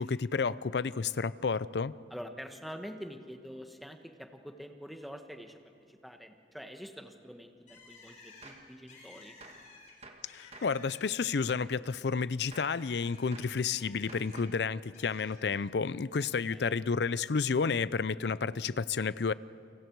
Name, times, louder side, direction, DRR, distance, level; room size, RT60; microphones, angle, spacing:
voice 1, 0.0-1.9 10.3-19.3, left 5 dB, 70° left, 18 dB, 0.5 m, -31 dB
voice 2, 2.1-5.6 5.9-9.4 16.5-16.8, equal, ahead, 5 dB, 1.2 m, -46 dB
Bird, 7.7-11.5 11.9-14.5 14.9-15.6, left 3 dB, 45° left, 5.3 m, -55 dB
Gunshot gunfire, 8.4-8.7 9.4-9.7 10.0-10.8 11.5-11.8 12.5-12.8 13.3-13.6 14.1-14.6, right 3 dB, 35° right, 1.5 m, -52 dB
29.0 x 25.0 x 4.7 m, 2.6 s
head